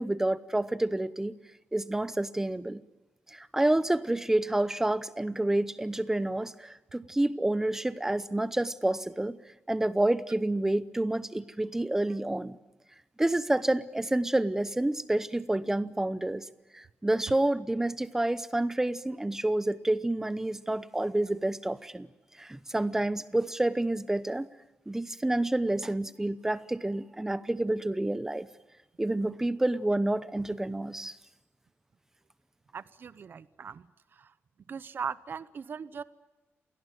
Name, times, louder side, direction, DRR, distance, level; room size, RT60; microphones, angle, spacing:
voice 1, 0.0-1.4 1.7-2.8 3.3-9.4 9.7-12.6 13.2-16.5 16.7-22.1 22.4-24.5 24.9-28.5 29.0-31.2, right 1 dB, 10° right, 15 dB, 0.8 m, -29 dB
voice 2, 32.7-33.9 34.1-34.3 34.7-36.0, right 6 dB, 50° right, 15 dB, 0.8 m, -39 dB
27.5 x 18.0 x 9.3 m, 1.1 s
wide cardioid pair, 150°, 5 cm